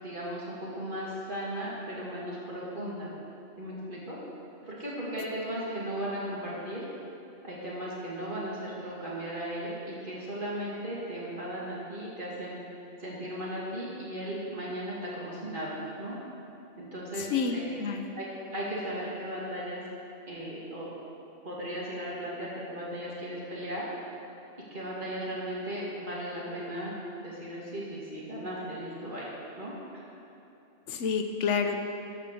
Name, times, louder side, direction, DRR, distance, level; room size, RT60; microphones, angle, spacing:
voice 1, 0.0-3.1 3.6-4.2 4.7-6.9 7.4-12.6 13.0-16.1 16.8-17.8 18.2-18.3 18.5-19.8 20.3-20.9 21.4-23.8 24.7-26.9 27.2-29.3 29.6-30.0, equal, 45° right, -6 dB, 2.5 m, -36 dB
voice 2, 17.2-18.1 30.9-31.8, left 5 dB, 90° left, 6 dB, 1.1 m, -29 dB
13.5 x 5.2 x 6.7 m, 2.8 s
omnidirectional pair, 1.2 m